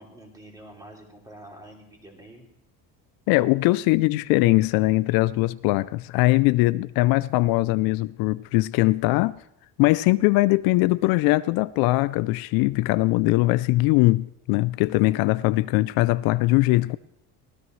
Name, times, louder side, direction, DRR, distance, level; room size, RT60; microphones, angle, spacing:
voice 1, 0.0-2.5, right 1 dB, 10° right, 2.9 m, -46 dB
voice 2, 3.3-9.3 9.8-17.0, left 20 dB, 75° left, 0.5 m, -21 dB
23.5 x 17.0 x 3.2 m
cardioid pair, 160°, 36 cm